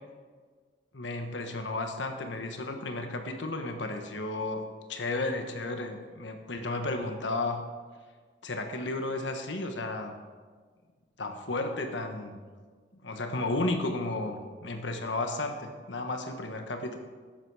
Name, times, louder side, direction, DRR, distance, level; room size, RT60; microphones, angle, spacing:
voice 1, 0.9-4.6 4.9-7.6 8.4-10.2 11.2-12.4 13.0-17.0, left 2 dB, 70° left, 5 dB, 1.3 m, -33 dB
13.5 x 11.0 x 4.8 m, 1.6 s
head